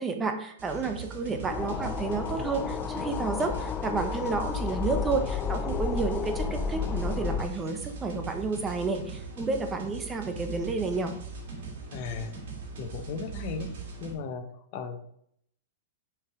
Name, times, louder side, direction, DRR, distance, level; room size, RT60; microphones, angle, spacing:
voice 1, 0.0-11.1, right 4 dB, 15° right, 5 dB, 0.7 m, -31 dB
sound 1, 0.6-14.1, right 3 dB, 70° right, 2.5 m, -40 dB
sound 2, 1.5-7.5, left 6 dB, 25° left, 0.3 m, -32 dB
voice 2, 11.9-12.3 12.8-13.7 14.0-14.5 14.7-15.0, left 5 dB, 45° left, 7 dB, 0.9 m, -36 dB
6.1 x 4.8 x 3.6 m, 0.68 s
hypercardioid pair, 145°, 0 cm